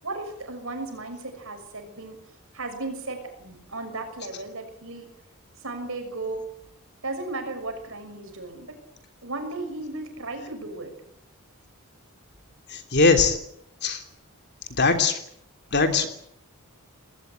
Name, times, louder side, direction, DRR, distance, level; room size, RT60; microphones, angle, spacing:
voice 1, 0.0-2.2 2.5-5.1 5.6-6.5 7.0-8.8 9.2-10.9, right 2 dB, 60° right, 5 dB, 6.4 m, -35 dB
voice 2, 12.7-13.4 13.8-14.0 14.8-15.2 15.7-16.1, left 4 dB, 50° left, 6 dB, 3.1 m, -20 dB
20.5 x 18.5 x 9.1 m, 0.70 s
head